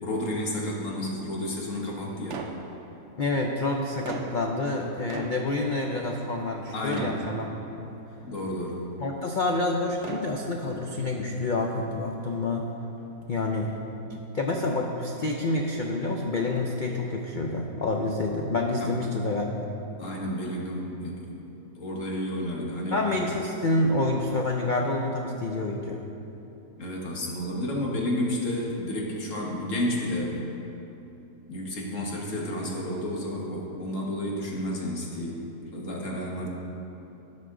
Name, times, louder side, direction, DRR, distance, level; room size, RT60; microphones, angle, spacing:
voice 1, 0.0-2.4 6.7-7.2 8.2-8.8 18.8-18.9 20.0-21.3 21.7-23.0 26.8-30.4 31.5-35.4 35.7-36.5, left 1 dB, 55° left, -2 dB, 1.7 m, -31 dB
sound 1, 2.3-3.3 3.8-6.6 6.9-8.0 8.6-8.7 9.8-10.8, right 4 dB, 60° right, 0.8 m, -40 dB
voice 2, 3.2-7.5 7.8-7.9 9.0-12.7 13.3-13.7 14.3-19.7 22.9-26.0, left 2 dB, 80° left, 1 dB, 0.4 m, -28 dB
16.0 x 5.7 x 3.7 m, 3.0 s
omnidirectional pair, 1.7 m